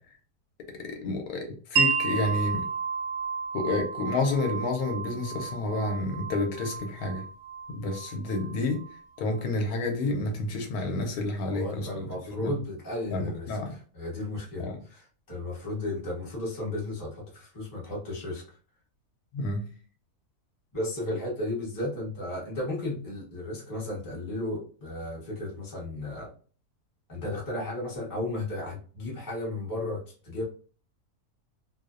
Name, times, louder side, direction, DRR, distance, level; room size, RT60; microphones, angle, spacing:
voice 1, 1.0-2.6 3.5-7.2 7.7-8.8 9.2-12.1 12.4-12.5 13.1-13.7 14.6-14.8 19.3-19.7, left 2 dB, 80° left, 3 dB, 1.1 m, -29 dB
Wind chime, 1.8-9.4, right 6 dB, 90° right, 1.1 m, -32 dB
voice 2, 11.4-18.4 20.7-26.3 27.1-30.4, left 1 dB, 20° left, -4 dB, 0.6 m, -34 dB
2.6 x 2.0 x 2.3 m, 0.41 s
omnidirectional pair, 1.6 m